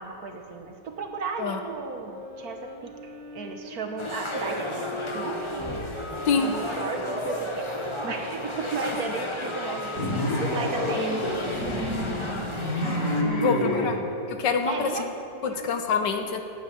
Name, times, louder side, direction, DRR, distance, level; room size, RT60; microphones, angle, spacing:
voice 1, 0.0-5.9 6.3-12.8 13.2-14.1 14.6-15.9, right 4 dB, 60° right, 4 dB, 1.6 m, -36 dB
Wind instrument woodwind instrument, 2.0-7.9 8.6-14.5, equal, 20° right, 1.7 m, -40 dB
sound 1, 4.0-13.2, left 1 dB, 20° left, 1.1 m, -33 dB
sound 2, 10.0-13.9, left 1 dB, 55° left, 2.4 m, -28 dB
voice 2, 13.4-14.0 14.3-15.1 15.4-16.4, left 5 dB, 80° left, 6 dB, 1.6 m, -25 dB
12.5 x 9.0 x 8.7 m, 2.7 s
omnidirectional pair, 1.9 m